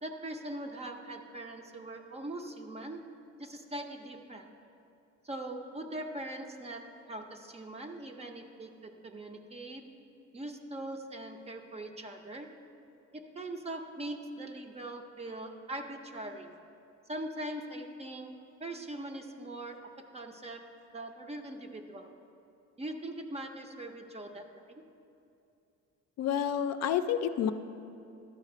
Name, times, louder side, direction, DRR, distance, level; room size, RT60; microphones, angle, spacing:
voice 1, 0.0-3.0 3.4-4.5 5.2-6.8 7.1-9.8 10.3-12.5 13.1-16.5 17.1-18.3 18.6-19.8 20.1-20.6 20.9-22.1 22.8-24.5, right 1 dB, 20° right, 5 dB, 0.6 m, -41 dB
voice 2, 26.2-27.5, left 9 dB, 60° left, 9 dB, 0.4 m, -29 dB
11.0 x 4.9 x 6.6 m, 2.7 s
cardioid pair, 145°, 29 cm